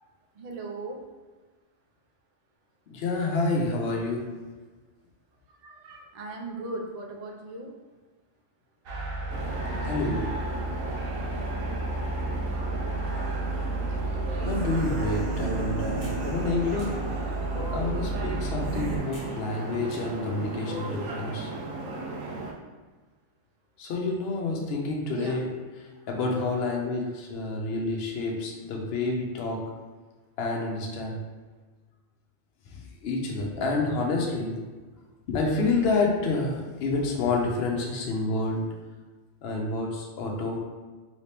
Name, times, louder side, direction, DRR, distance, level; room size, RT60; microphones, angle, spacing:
voice 1, 0.4-1.1 5.6-7.8 14.0-14.5 25.1-25.4, right 2 dB, 70° right, 1 dB, 0.3 m, -38 dB
voice 2, 2.9-4.2 9.8-10.3 14.4-17.0 17.7-21.5 23.8-25.5 25.8-29.6 30.4-31.2 32.7-34.6 35.3-38.6 39.4-40.6, left 3 dB, 60° left, 0 dB, 0.8 m, -28 dB
sound 1, 8.9-19.0, right 2 dB, 55° right, 0.8 m, -31 dB
sound 2, 9.3-22.5, right 2 dB, 90° right, 1.0 m, -36 dB
sound 3, 16.0-16.2 16.8-16.9 17.5-18.0 19.1-19.3 19.9-20.0 20.6-21.2, left 2 dB, 35° left, 1.0 m, -40 dB
3.1 x 2.8 x 3.3 m, 1.3 s
omnidirectional pair, 1.3 m